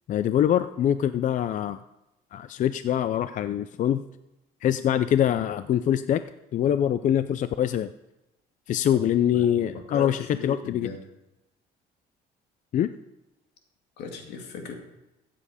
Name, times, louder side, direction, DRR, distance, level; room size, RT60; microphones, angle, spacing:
voice 1, 0.1-1.8 2.3-4.0 4.6-6.2 6.5-7.9 8.7-10.9 12.7-12.9, left 10 dB, 50° left, 13 dB, 0.5 m, -24 dB
voice 2, 9.3-11.0 14.0-14.7, left 4 dB, 85° left, 3 dB, 2.3 m, -38 dB
15.5 x 7.6 x 5.0 m, 0.93 s
cardioid pair, 110°, 17 cm